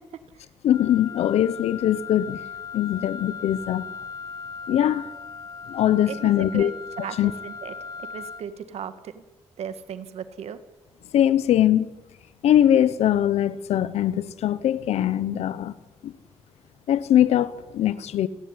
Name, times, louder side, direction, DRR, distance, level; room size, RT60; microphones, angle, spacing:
voice 1, 0.6-2.4 2.7-3.9 4.7-5.1 5.7-6.7 7.2-7.3 11.1-11.9 12.4-15.7 16.0-16.1 16.9-18.3, left 11 dB, 90° left, 1.1 m, -21 dB
Wind instrument woodwind instrument, 0.7-8.5, left 5 dB, 35° left, 1.9 m, -38 dB
voice 2, 6.1-6.7 7.0-7.7 8.0-9.2 9.6-10.6, right 8 dB, 80° right, 1.8 m, -36 dB
29.5 x 11.5 x 9.9 m
cardioid pair, 85°, 11 cm